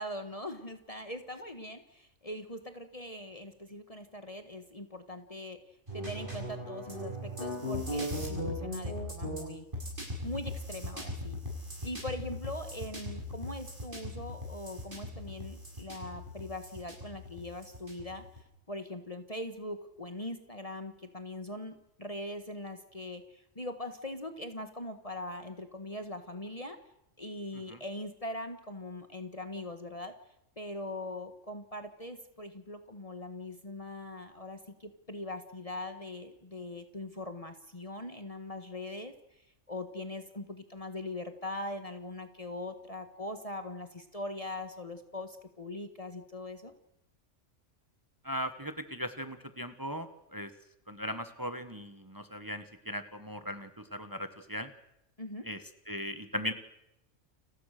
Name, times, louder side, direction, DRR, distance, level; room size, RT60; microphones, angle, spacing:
voice 1, 0.0-5.6 5.9-9.7 10.2-11.4 11.8-18.2 18.7-26.8 27.2-30.1 30.6-39.1 39.7-46.7 55.2-55.5, left 1 dB, 30° left, 7 dB, 1.7 m, -41 dB
sound 1, 5.9-18.4, left 1 dB, 45° right, 7.7 m, -39 dB
voice 2, 48.2-50.5 50.9-54.7 55.4-55.6 55.9-56.5, equal, 15° right, 9 dB, 1.5 m, -38 dB
30.0 x 23.5 x 6.7 m, 0.86 s
omnidirectional pair, 1.3 m